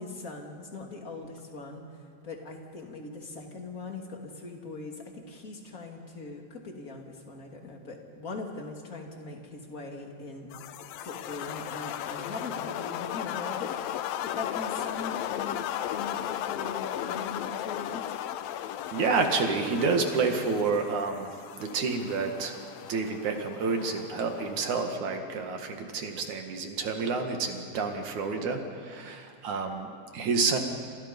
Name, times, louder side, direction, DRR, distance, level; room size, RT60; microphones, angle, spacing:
voice 1, 0.0-1.8 2.2-10.5 11.0-13.7 14.2-15.6 15.9-18.2, left 3 dB, 25° left, 1 dB, 2.5 m, -40 dB
sound 1, 10.5-24.9, left 11 dB, 75° left, 2.4 m, -36 dB
voice 2, 18.9-21.3 21.6-22.6 22.8-30.6, right 4 dB, 55° right, 4 dB, 3.1 m, -29 dB
29.0 x 27.5 x 5.5 m, 2.4 s
omnidirectional pair, 4.5 m